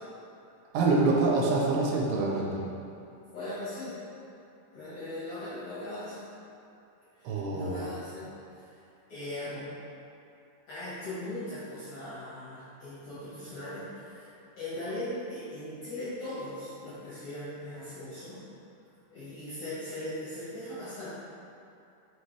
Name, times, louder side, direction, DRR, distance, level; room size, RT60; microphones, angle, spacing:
voice 1, 0.7-2.6 7.2-7.7, right 3 dB, 80° right, -3 dB, 2.8 m, -26 dB
voice 2, 3.3-3.9 4.7-6.2 7.1-8.7 9.1-9.7 10.7-18.4 19.1-21.1, left 1 dB, 60° left, -11 dB, 1.8 m, -39 dB
5.8 x 5.7 x 3.3 m, 2.7 s
omnidirectional pair, 4.8 m